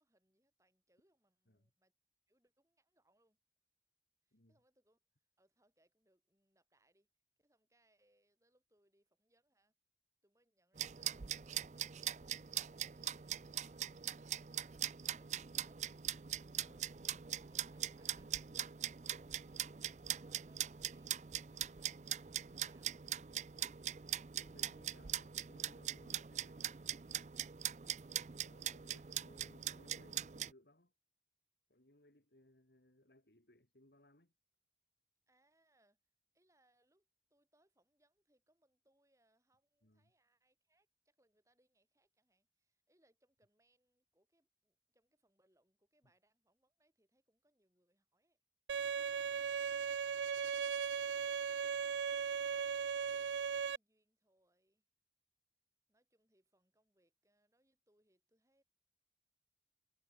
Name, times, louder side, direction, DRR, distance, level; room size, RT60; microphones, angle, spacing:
voice 1, 0.0-1.9 2.3-3.4 4.2-5.0 5.4-7.1 7.4-9.7 10.2-11.3 16.6-16.9 17.5-19.8 20.2-23.3 28.8-29.1 35.3-36.0 36.3-48.4 48.9-49.1 52.3-54.8 55.9-58.6, right 1 dB, 15° right, 7.6 m, -77 dB
sound 1, 10.8-30.5, right 11 dB, 40° right, 0.5 m, -42 dB
voice 2, 16.6-16.9 24.3-26.8 28.4-30.9 31.7-34.3 39.8-40.1 49.2-49.5, left 1 dB, 70° left, 3.4 m, -66 dB
Bowed string instrument, 48.7-53.8, right 6 dB, 90° right, 0.4 m, -37 dB
head